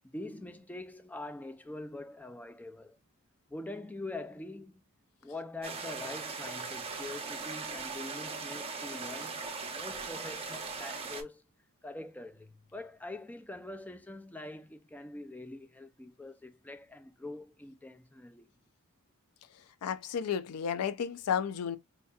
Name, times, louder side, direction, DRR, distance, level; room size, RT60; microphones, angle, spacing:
voice 1, 0.0-3.0 3.5-4.7 5.2-11.4 11.8-18.5, left 2 dB, 5° left, 0.4 m, -44 dB
sound 1, 5.6-11.2, right 4 dB, 25° right, 0.7 m, -39 dB
voice 2, 19.8-21.8, left 7 dB, 80° left, 0.4 m, -32 dB
4.5 x 2.6 x 2.3 m
head